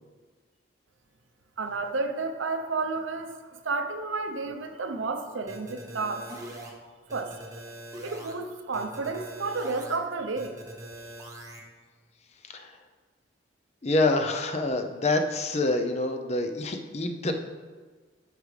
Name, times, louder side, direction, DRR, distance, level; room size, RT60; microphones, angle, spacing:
voice 1, 1.6-3.4 3.6-6.4 7.1-7.4 8.0-10.5, right 3 dB, 80° right, 7 dB, 0.7 m, -31 dB
sound 1, 5.5-6.7 7.1-8.3 8.7-10.0 10.4-11.6, right 1 dB, 15° right, 1.1 m, -42 dB
voice 2, 13.8-17.3, left 2 dB, 35° left, 5 dB, 0.5 m, -26 dB
13.0 x 5.0 x 3.3 m, 1.4 s
head